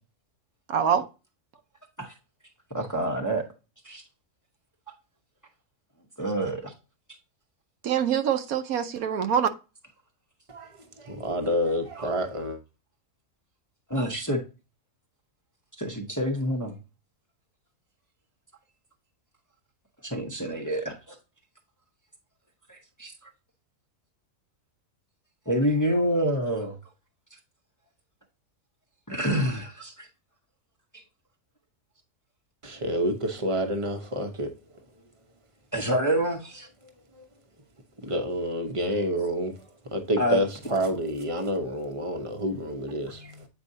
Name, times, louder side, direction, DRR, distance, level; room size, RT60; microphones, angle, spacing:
voice 1, 0.7-1.0 7.8-9.5, right 8 dB, 80° right, 1.2 m, -24 dB
voice 2, 2.7-3.4 3.8-4.0 6.2-6.7 11.9-12.1 13.9-14.4 15.8-16.7 20.0-21.0 22.7-23.1 25.5-26.7 29.1-30.1 30.9-31.0 35.7-36.7 40.2-40.4 43.2-43.3, right 1 dB, 15° left, 0.8 m, -27 dB
voice 3, 11.0-12.6 32.6-34.5 38.0-39.5 39.9-43.2, equal, 25° right, 0.9 m, -28 dB
8.4 x 4.6 x 2.7 m
omnidirectional pair, 1.5 m